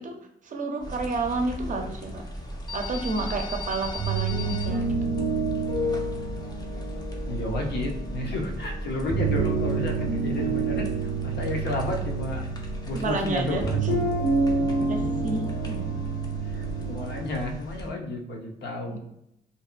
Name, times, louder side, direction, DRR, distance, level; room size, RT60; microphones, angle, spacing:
voice 1, 0.0-2.2 2.7-4.9 12.9-13.6 14.8-15.9 18.9-19.0, right 3 dB, 50° right, 4 dB, 0.5 m, -31 dB
sound 1, 0.8-17.9, equal, 25° left, 0.4 m, -37 dB
sound 2, 3.8-17.2, right 4 dB, 90° left, 1.5 m, -28 dB
voice 2, 7.2-12.6 12.8-13.9 14.5-14.9 16.4-19.0, left 1 dB, 70° left, 1 dB, 0.7 m, -32 dB
2.7 x 2.1 x 2.3 m, 0.79 s
cardioid pair, 90°, 18 cm